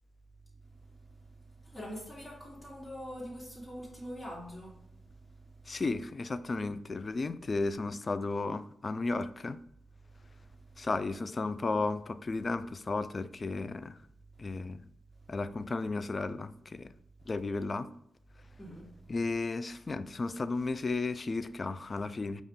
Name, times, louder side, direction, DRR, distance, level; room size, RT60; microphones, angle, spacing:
voice 1, 0.6-5.8 10.2-10.9 14.4-14.6 15.2-15.4 17.2-17.3 18.5-19.2, equal, 20° left, 1.4 m, -46 dB
voice 2, 5.7-9.6 10.8-14.0 14.4-14.8 15.3-16.9 17.3-17.9 19.1-22.4, left 3 dB, 40° left, 0.3 m, -34 dB
5.5 x 2.4 x 3.7 m
cardioid pair, 55°, 0 cm